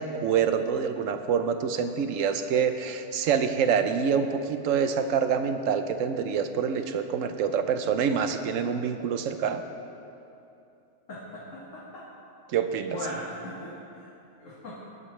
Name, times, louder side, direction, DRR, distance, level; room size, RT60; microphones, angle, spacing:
voice 1, 0.0-9.6 12.5-13.0, right 7 dB, 85° right, 8 dB, 1.0 m, -26 dB
voice 2, 11.1-12.0 12.9-14.1 14.4-14.8, left 1 dB, 80° left, -7 dB, 1.9 m, -39 dB
18.5 x 8.2 x 3.2 m, 2.8 s
omnidirectional pair, 1.3 m